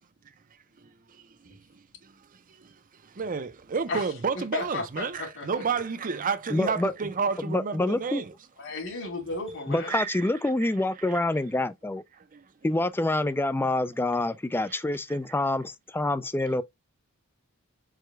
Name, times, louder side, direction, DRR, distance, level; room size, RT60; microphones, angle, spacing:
voice 1, 0.8-2.1 2.6-2.7 3.0-8.3 9.8-10.3 10.6-10.7 11.1-11.2 12.2-12.5 14.7-14.8, right 5 dB, 40° right, 0.6 m, -31 dB
voice 2, 4.3-5.4 8.6-9.9, left 3 dB, 60° left, 2.3 m, -34 dB
voice 3, 6.5-6.9 7.4-8.2 9.7-12.0 12.6-16.6, left 2 dB, 10° left, 0.3 m, -27 dB
4.8 x 2.3 x 4.5 m
head